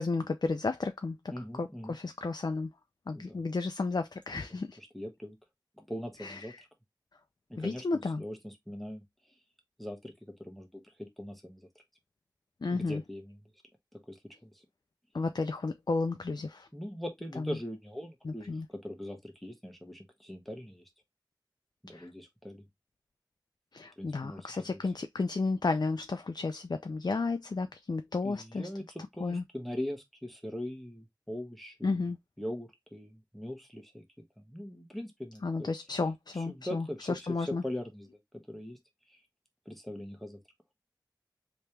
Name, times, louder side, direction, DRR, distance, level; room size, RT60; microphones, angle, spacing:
voice 1, 0.0-1.2 1.5-2.7 3.1-4.8 6.2-6.5 7.6-8.2 12.6-13.0 15.1-16.7 17.4-17.6 18.2-18.7 21.9-22.1 23.7-28.7 29.2-29.4 31.8-32.2 35.4-37.6, left 3 dB, 60° left, 0.4 m, -32 dB
voice 2, 1.3-2.0 3.1-3.4 4.3-4.4 4.8-5.4 5.8-6.5 7.5-7.9 8.2-9.0 9.8-11.7 12.7-13.4 13.9-14.6 16.7-20.9 21.8-22.6 24.0-24.8 28.2-32.0 32.4-34.0 34.4-35.7 36.3-38.1 38.3-38.8 39.1-39.2 39.6-40.4, left 1 dB, ahead, 1.1 m, -41 dB
3.3 x 2.9 x 3.2 m
wide cardioid pair, 45°, 8 cm